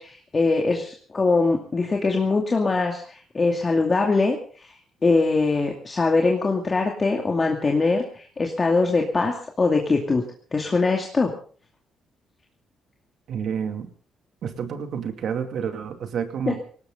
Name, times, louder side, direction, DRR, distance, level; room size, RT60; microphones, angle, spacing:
voice 1, 0.0-4.8 5.0-10.2 10.5-11.3 16.5-16.6, left 3 dB, 30° left, 1 dB, 2.5 m, -22 dB
voice 2, 13.3-13.9 14.4-16.6, right 7 dB, 65° right, 7 dB, 2.5 m, -29 dB
19.0 x 18.0 x 3.9 m, 0.44 s
cardioid pair, 90°, 0 cm